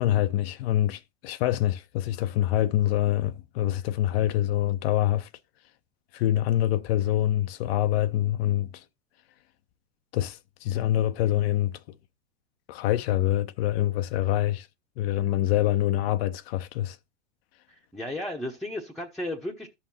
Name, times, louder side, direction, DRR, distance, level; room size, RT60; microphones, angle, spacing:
voice 1, 0.0-5.3 6.1-8.8 10.1-11.7 12.7-14.7 15.0-17.0, left 13 dB, 60° left, 0.6 m, -25 dB
voice 2, 17.7-19.7, left 1 dB, ahead, 0.9 m, -34 dB
13.0 x 5.8 x 2.8 m
hypercardioid pair, 120°, 35 cm